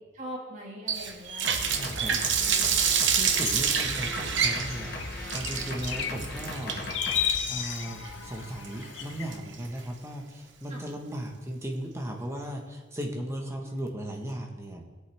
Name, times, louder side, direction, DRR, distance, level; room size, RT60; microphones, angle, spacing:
voice 1, 0.1-3.0 10.7-10.9 13.6-13.8, equal, 40° right, -3 dB, 2.2 m, -43 dB
Water tap faucet, 0.9-9.8, right 7 dB, 65° right, 1.0 m, -28 dB
sound 1, 1.4-7.3, left 2 dB, 50° left, 1.3 m, -38 dB
voice 2, 1.7-2.1 3.2-5.0 5.3-6.8 7.5-14.8, equal, 15° right, 1 dB, 1.3 m, -36 dB
sound 2, 2.3-9.4, left 9 dB, 70° left, 0.6 m, -36 dB
17.5 x 8.2 x 3.5 m, 1.3 s
head